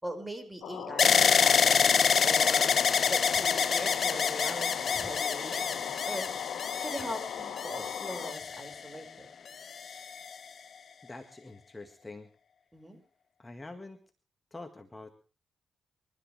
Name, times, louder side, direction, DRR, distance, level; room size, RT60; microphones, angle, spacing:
voice 1, 0.0-2.7 3.1-6.6 6.8-9.3 12.7-13.0, right 1 dB, 15° right, 7 dB, 5.6 m, -41 dB
sound 1, 0.6-8.3, left 9 dB, 75° left, 1.7 m, -40 dB
sound 2, 1.0-9.0 9.7-10.4, left 6 dB, 60° left, 0.9 m, -27 dB
voice 2, 11.0-12.3 13.4-14.0 14.5-15.2, left 2 dB, 20° left, 6 dB, 1.8 m, -45 dB
26.0 x 13.5 x 3.4 m, 0.34 s
supercardioid pair, 50°, 0 cm